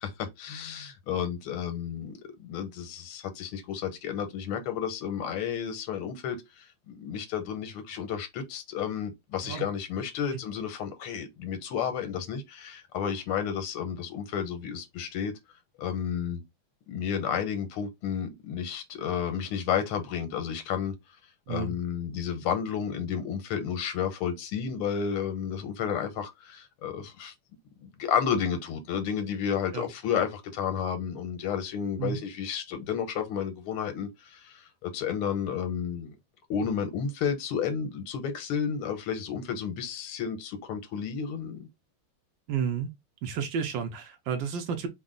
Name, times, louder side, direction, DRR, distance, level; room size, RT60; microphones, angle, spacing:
voice 1, 0.0-15.3 15.8-16.4 16.9-20.9 21.5-27.3 27.8-36.2 36.5-41.7, left 7 dB, 85° left, 1.7 m, -32 dB
voice 2, 42.5-42.9 43.2-44.9, right 7 dB, 70° right, 1.3 m, -31 dB
3.9 x 2.2 x 3.7 m
omnidirectional pair, 2.3 m